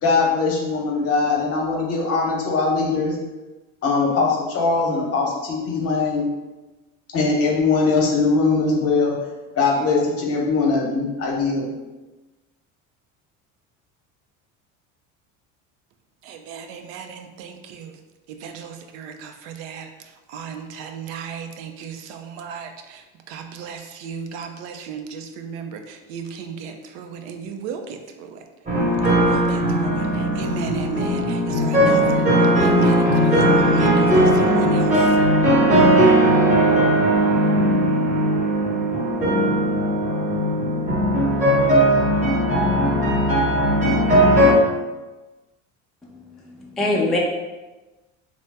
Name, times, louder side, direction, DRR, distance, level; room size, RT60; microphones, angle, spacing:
voice 1, 0.0-3.2 3.8-6.3 7.1-9.2 9.6-11.7, left 4 dB, 45° left, -1 dB, 0.8 m, -21 dB
voice 2, 16.2-18.0 18.3-28.4 29.0-35.2, right 6 dB, 90° right, 5 dB, 0.5 m, -35 dB
sound 1, 28.7-44.5, right 1 dB, 20° right, 0.9 m, -18 dB
voice 3, 46.4-47.2, left 2 dB, ahead, -3 dB, 0.3 m, -23 dB
2.8 x 2.0 x 3.3 m, 1.1 s
supercardioid pair, 110°, 34 cm